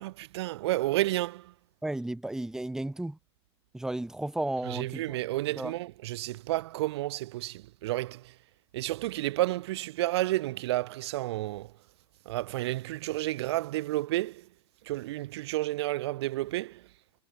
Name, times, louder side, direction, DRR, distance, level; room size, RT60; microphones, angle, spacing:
voice 1, 0.0-1.5 4.7-8.3 8.7-11.7 12.3-14.5 14.9-16.8, right 17 dB, 65° right, 0.6 m, -31 dB
voice 2, 1.8-3.2 3.7-5.2 5.6-5.7, right 1 dB, 5° right, 1.0 m, -33 dB
hypercardioid pair, 115°, 15 cm